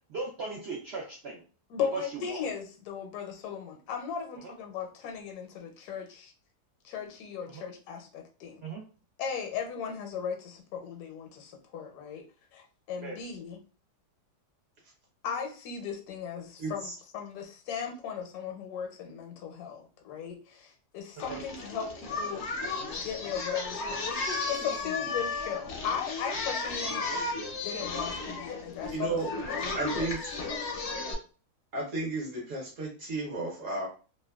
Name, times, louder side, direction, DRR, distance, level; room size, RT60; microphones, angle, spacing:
voice 1, 0.1-1.4 1.9-2.4 4.4-4.5 7.5-7.6 8.6-8.8 13.0-13.2 21.1-21.4, right 3 dB, 85° right, 0.5 m, -38 dB
voice 2, 1.7-6.3 6.8-8.6 9.2-12.2 12.5-13.6 15.2-21.9 22.2-22.4 23.0-27.0 27.6-30.1, left 7 dB, 75° left, 1.1 m, -37 dB
voice 3, 16.6-16.9 28.9-29.3 29.7-30.2 31.7-33.9, right 3 dB, 60° right, 1.0 m, -33 dB
Singing, 21.2-31.1, left 3 dB, 60° left, 0.8 m, -34 dB
2.8 x 2.2 x 2.2 m
omnidirectional pair, 1.7 m